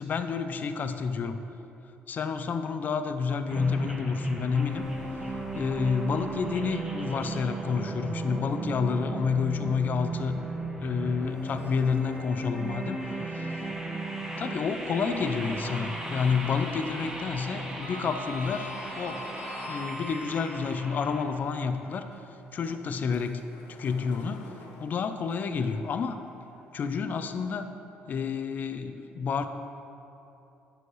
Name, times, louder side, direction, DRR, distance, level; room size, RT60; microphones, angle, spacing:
voice 1, 0.0-1.4 2.1-4.9 5.5-10.4 10.8-13.6 14.4-19.3 19.7-23.4 23.8-24.5 24.8-26.2 26.7-27.7 28.1-29.5, left 5 dB, 45° left, 9 dB, 0.5 m, -29 dB
sound 1, 3.5-21.3, right 2 dB, 15° right, 1.0 m, -35 dB
Sliding door, 11.5-12.5 12.9-13.0 14.7-15.7 16.0-16.4 16.6-20.7 21.4-26.6, left 1 dB, 85° left, 0.9 m, -46 dB
sound 2, 14.7-19.3, left 2 dB, 65° left, 1.1 m, -54 dB
9.5 x 6.3 x 3.2 m, 2.9 s
cardioid pair, 105°, 4 cm